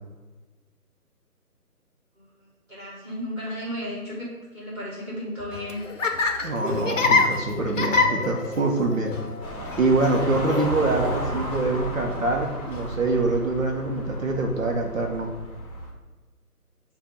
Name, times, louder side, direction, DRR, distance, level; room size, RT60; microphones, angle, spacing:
voice 1, 2.7-5.8, equal, 5° right, -15 dB, 1.6 m, -34 dB
Laughter, 5.4-13.0, left 4 dB, 55° left, 0.7 m, -27 dB
voice 2, 6.4-9.1 9.8-15.3, right 2 dB, 60° right, 0 dB, 1.1 m, -24 dB
sound 1, 9.4-15.9, equal, 25° left, 1.1 m, -34 dB
7.1 x 2.7 x 5.3 m, 1.3 s
figure-of-eight pair, 160°, 46 cm